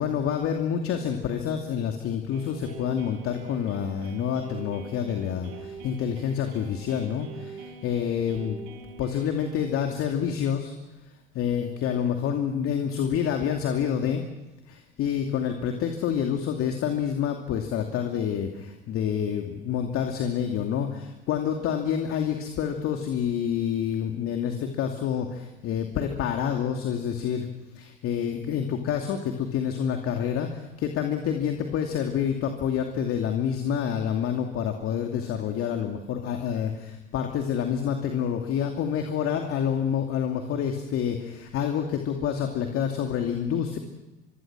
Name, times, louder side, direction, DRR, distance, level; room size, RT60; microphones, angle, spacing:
voice 1, 0.0-8.6 9.0-10.7 11.3-14.2 14.7-27.5 27.7-43.8, left 8 dB, 50° left, 4 dB, 2.6 m, -28 dB
sound 1, 2.3-9.7, right 5 dB, 70° right, 3.7 m, -44 dB
26.0 x 23.5 x 6.2 m, 1.0 s
hypercardioid pair, 75°, 29 cm